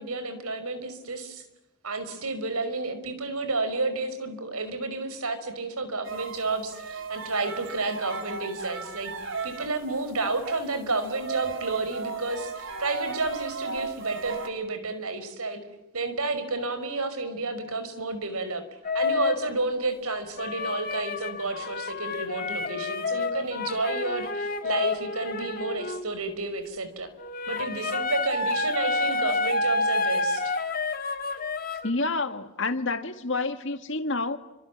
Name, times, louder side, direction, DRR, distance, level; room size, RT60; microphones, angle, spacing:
voice 1, 0.0-1.4 1.8-9.1 9.4-15.6 15.9-18.6 18.9-27.1 27.5-30.6, right 3 dB, 90° right, 5.4 m, -31 dB
sound 1, 6.0-9.8 10.2-14.5, right 4 dB, 55° right, 3.3 m, -35 dB
sound 2, 18.8-19.5 20.4-26.1 27.2-31.9, left 3 dB, 40° left, 1.8 m, -29 dB
voice 2, 31.8-34.4, left 3 dB, 55° left, 2.1 m, -28 dB
30.0 x 26.5 x 7.3 m
head